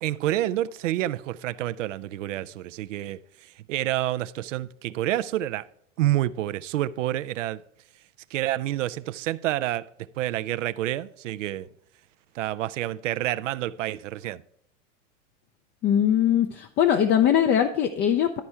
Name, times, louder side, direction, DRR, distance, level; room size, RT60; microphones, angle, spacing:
voice 1, 0.0-3.2 3.7-5.7 6.0-7.6 8.3-9.9 10.1-11.7 12.4-14.4, right 14 dB, 75° right, 0.5 m, -28 dB
voice 2, 15.8-18.4, left 9 dB, 25° left, 0.5 m, -21 dB
11.5 x 4.3 x 4.6 m
hypercardioid pair, 120°, 38 cm